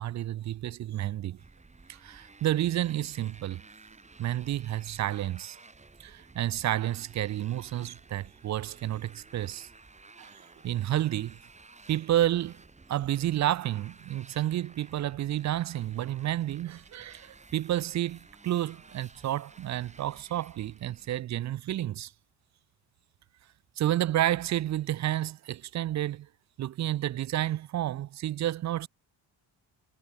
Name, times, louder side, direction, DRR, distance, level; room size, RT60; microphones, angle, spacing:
voice 1, 0.0-1.4 1.9-3.6 4.2-5.6 6.0-9.7 10.2-10.4 10.6-11.4 11.9-12.6 12.9-22.1 23.8-26.3 26.6-28.9, right 13 dB, 40° right, 0.4 m, -30 dB
Motorcycle, 1.4-21.1, right 3 dB, 15° right, 7.0 m, -54 dB
cardioid pair, 165°, 45 cm